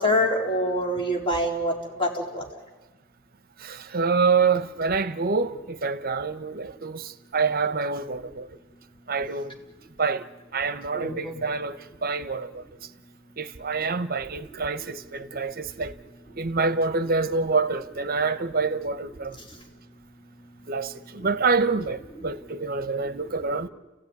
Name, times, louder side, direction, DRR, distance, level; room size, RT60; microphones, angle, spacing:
voice 1, 0.0-1.7 2.0-2.4 10.9-11.4, left 1 dB, 30° left, 3.7 m, -25 dB
voice 2, 3.6-8.5 9.1-9.6 10.0-10.3 10.5-12.6 13.4-15.9 16.4-19.4 20.7-23.7, right 4 dB, 50° right, 0.9 m, -26 dB
29.5 x 15.5 x 9.5 m
head